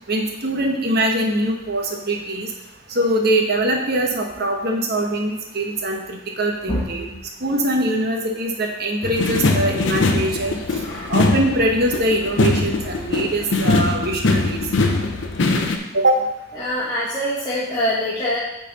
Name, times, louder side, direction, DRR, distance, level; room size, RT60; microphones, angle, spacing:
voice 1, 0.1-2.5 2.9-7.0 7.4-10.5 11.1-14.6 15.9-16.2, right 1 dB, 50° right, 2 dB, 1.0 m, -22 dB
sound 1, 9.0-15.8, left 2 dB, 60° left, 0.6 m, -21 dB
voice 2, 10.8-11.1 16.6-18.4, equal, 25° left, -9 dB, 1.3 m, -24 dB
8.3 x 3.9 x 4.0 m, 0.88 s
head